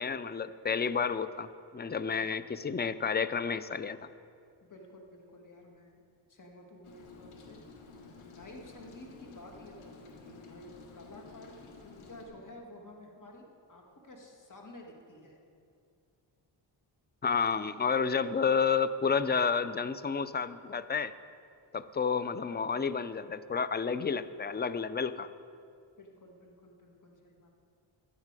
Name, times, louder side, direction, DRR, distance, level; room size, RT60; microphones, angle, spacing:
voice 1, 0.0-4.0 17.2-21.1 21.7-25.3, left 6 dB, 20° left, 14 dB, 0.4 m, -30 dB
voice 2, 4.6-6.0 6.3-15.4 26.0-27.5, left 1 dB, 40° left, 1 dB, 2.1 m, -52 dB
Rain, 6.8-12.3, left 4 dB, 85° left, 1.5 m, -52 dB
12.5 x 9.4 x 4.8 m, 2.4 s
cardioid pair, 60°, 48 cm